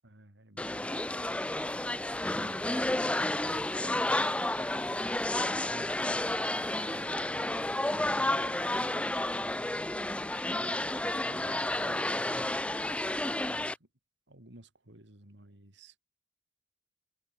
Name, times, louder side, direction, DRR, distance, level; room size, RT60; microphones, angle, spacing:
voice 1, 0.0-2.1 2.3-10.2 10.5-12.5 13.3-13.9 14.3-16.0, right 1 dB, 75° right, 3.5 m, -55 dB
sound 1, 0.6-13.7, left 1 dB, 5° left, 0.4 m, -31 dB
head